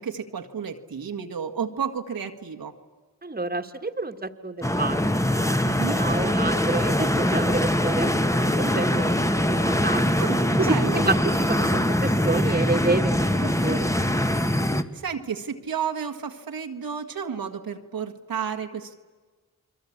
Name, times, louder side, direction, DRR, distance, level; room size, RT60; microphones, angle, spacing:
voice 1, 0.0-2.7 5.6-6.0 10.2-11.1 14.4-18.9, right 7 dB, 75° right, 4 dB, 1.8 m, -32 dB
voice 2, 3.2-5.0 5.3-10.0 10.6-10.8 11.1-13.9, right 3 dB, 25° right, 8 dB, 1.9 m, -29 dB
sound 1, 4.6-14.8, left 1 dB, 10° left, 1.7 m, -23 dB
30.0 x 22.0 x 8.7 m, 1.4 s
cardioid pair, 40°, 36 cm